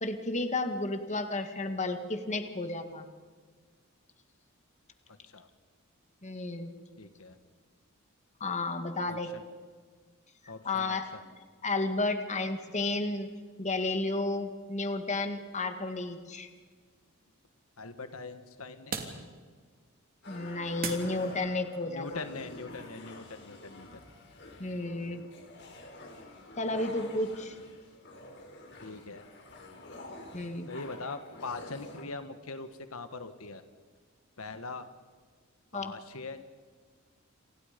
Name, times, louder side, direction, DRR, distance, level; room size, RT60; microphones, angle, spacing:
voice 1, 0.0-3.1 6.2-6.7 8.4-9.3 10.6-11.1 11.6-13.3 13.6-16.5 20.3-22.2 24.6-25.2 26.6-27.6 30.3-30.7 35.7-35.9, left 2 dB, 35° left, 7 dB, 2.1 m, -32 dB
voice 2, 5.1-5.5 7.0-7.4 9.1-9.4 10.5-11.2 17.8-19.0 21.8-24.0 28.8-29.3 30.6-33.6 34.4-34.9 35.7-36.4, left 3 dB, 85° left, 9 dB, 1.5 m, -42 dB
sound 1, 15.6-21.7, right 5 dB, 45° right, 3.0 m, -44 dB
sound 2, 20.2-32.0, left 2 dB, 55° left, 5.0 m, -48 dB
29.5 x 26.5 x 5.3 m, 1.5 s
head